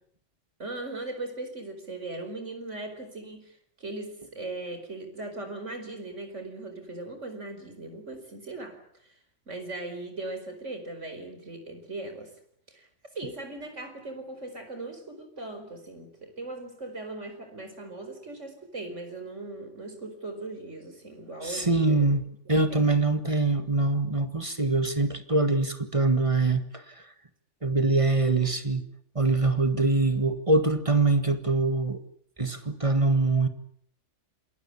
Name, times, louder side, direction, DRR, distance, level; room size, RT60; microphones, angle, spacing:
voice 1, 0.6-8.8 9.0-9.1 9.5-12.3 12.7-12.9 13.1-22.1 22.7-22.9, right 2 dB, 85° right, 5.1 m, -39 dB
voice 2, 21.4-27.0 27.6-28.9 29.1-32.0 32.4-33.5, right 3 dB, 25° right, 1.7 m, -24 dB
27.5 x 20.5 x 8.5 m
omnidirectional pair, 1.2 m